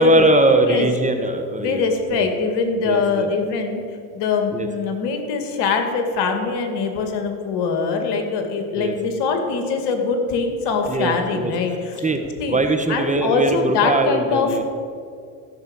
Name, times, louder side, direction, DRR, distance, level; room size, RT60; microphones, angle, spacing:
voice 1, 0.0-1.8 2.1-2.3 2.8-3.3 4.5-4.7 8.8-8.9 10.9-11.5 12.0-12.2 12.5-14.6, right 2 dB, 15° right, 6 dB, 1.2 m, -20 dB
voice 2, 1.6-3.8 4.1-12.0 12.4-12.6 12.9-14.6, left 5 dB, 65° left, 5 dB, 1.9 m, -22 dB
13.5 x 6.1 x 7.3 m, 2.3 s
hypercardioid pair, 70°, 45 cm